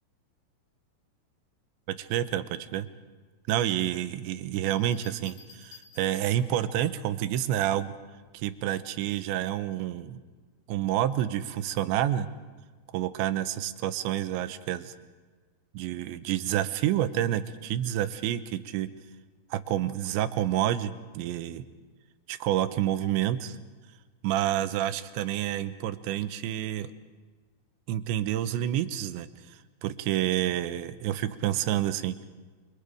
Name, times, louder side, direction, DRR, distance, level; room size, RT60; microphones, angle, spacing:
voice 1, 1.9-2.9 3.5-7.9 8.3-10.2 10.7-12.3 12.9-14.9 15.7-18.9 19.5-21.6 22.3-23.6 24.2-26.9 27.9-32.3, right 12 dB, 85° right, 11 dB, 3.2 m, -29 dB
Bell, 4.7-6.6 8.2-8.6, left 6 dB, 80° left, 6.4 m, -54 dB
29.0 x 24.5 x 5.1 m, 1.4 s
omnidirectional pair, 5.2 m